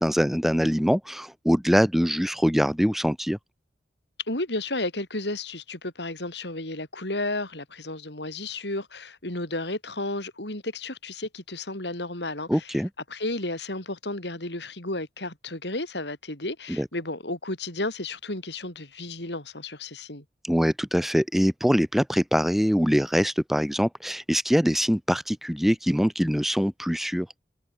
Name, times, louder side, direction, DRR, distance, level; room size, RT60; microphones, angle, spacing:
voice 1, 0.0-3.4 12.5-12.9 16.7-16.9 20.4-27.3, equal, ahead, 0.6 m, -23 dB
voice 2, 4.3-12.7 13.1-20.2, left 2 dB, 80° left, 6.0 m, -33 dB
head